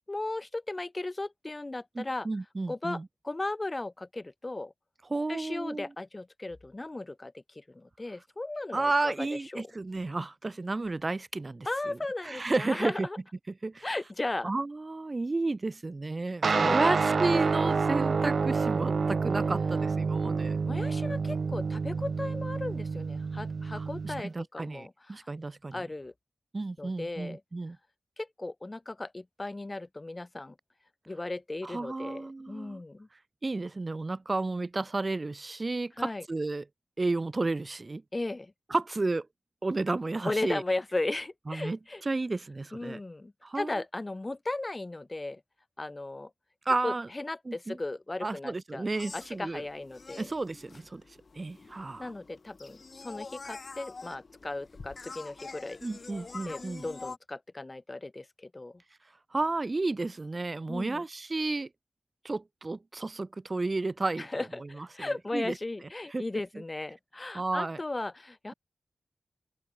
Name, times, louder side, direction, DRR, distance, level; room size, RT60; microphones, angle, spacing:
voice 1, 0.1-2.3 2.7-4.7 5.3-9.7 11.6-13.2 13.8-14.5 16.5-17.0 20.2-20.3 20.6-25.2 25.7-26.1 26.8-27.4 28.2-30.5 31.1-33.1 36.0-36.2 38.1-38.5 40.2-42.0 42.7-45.4 45.8-46.3 46.8-48.9 49.1-50.3 52.0-55.8 56.4-58.8 60.7-61.0 64.2-68.5, left 2 dB, 30° left, 0.7 m, -36 dB
voice 2, 1.9-3.1 5.1-5.9 8.7-12.0 12.2-13.1 13.6-13.9 14.4-20.6 23.7-25.9 26.5-27.8 31.6-32.8 33.4-36.6 37.0-38.0 38.7-39.3 39.6-40.6 41.5-43.0 43.4-43.7 46.6-47.1 47.4-47.8 48.2-49.6 50.2-51.0 51.3-52.1 55.8-56.9 59.3-61.7 62.2-65.6 65.8-66.2 67.3-67.8, right 3 dB, 35° right, 1.0 m, -32 dB
sound 1, 16.4-24.2, right 4 dB, 65° right, 0.3 m, -28 dB
sound 2, 48.9-57.2, left 4 dB, 55° left, 3.6 m, -46 dB
open air
cardioid pair, 65°, 0 cm